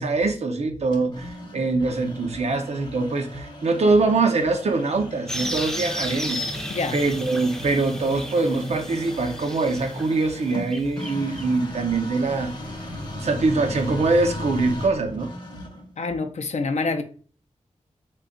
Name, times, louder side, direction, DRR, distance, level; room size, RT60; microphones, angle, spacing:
voice 1, 0.0-6.4 6.9-12.5 13.1-15.3, right 3 dB, 60° right, 0.6 m, -23 dB
sound 1, 0.9-15.9, left 1 dB, 40° left, 0.8 m, -37 dB
sound 2, 5.3-11.4, left 1 dB, 5° left, 0.5 m, -33 dB
voice 2, 16.0-17.0, left 3 dB, 65° left, 0.5 m, -26 dB
3.4 x 2.2 x 3.8 m
wide cardioid pair, 70°, 12 cm